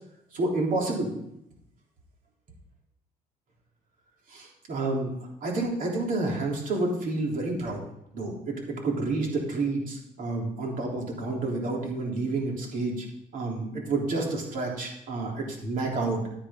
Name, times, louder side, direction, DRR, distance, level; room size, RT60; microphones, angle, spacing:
voice 1, 0.3-1.1 4.3-5.1 5.4-7.8 8.1-13.0 13.3-16.2, right 2 dB, 50° right, -1 dB, 3.4 m, -29 dB
11.5 x 10.0 x 3.7 m, 0.78 s
cardioid pair, 110°, 17 cm